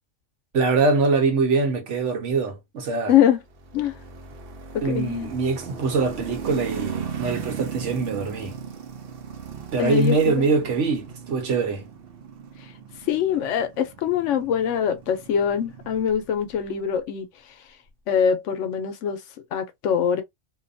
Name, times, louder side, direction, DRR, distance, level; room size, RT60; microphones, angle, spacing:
voice 1, 0.5-3.1 4.8-8.6 9.7-11.8, right 4 dB, 75° right, 1.2 m, -23 dB
voice 2, 3.1-3.4 3.7-3.9 4.7-5.3 9.8-10.5 13.1-17.3 18.1-19.2 19.5-20.2, left 8 dB, 80° left, 1.0 m, -23 dB
sound 1, 3.5-16.6, right 7 dB, 60° right, 0.7 m, -37 dB
2.6 x 2.3 x 2.6 m
omnidirectional pair, 1.3 m